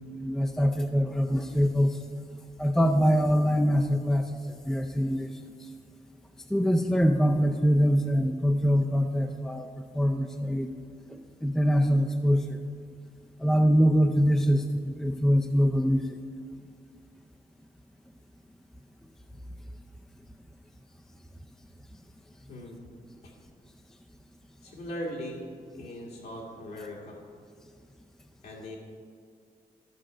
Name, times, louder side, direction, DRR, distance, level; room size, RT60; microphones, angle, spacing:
voice 1, 0.2-2.0 2.6-4.3 4.6-5.3 6.5-9.7 9.9-10.7 11.4-12.6 13.4-16.1 25.8-25.9, equal, 5° left, 3 dB, 0.5 m, -24 dB
voice 2, 24.6-25.4 25.7-27.2 28.4-28.8, equal, 75° left, -4 dB, 1.9 m, -39 dB
12.5 x 6.5 x 5.0 m, 2.2 s
cardioid pair, 110°, 17 cm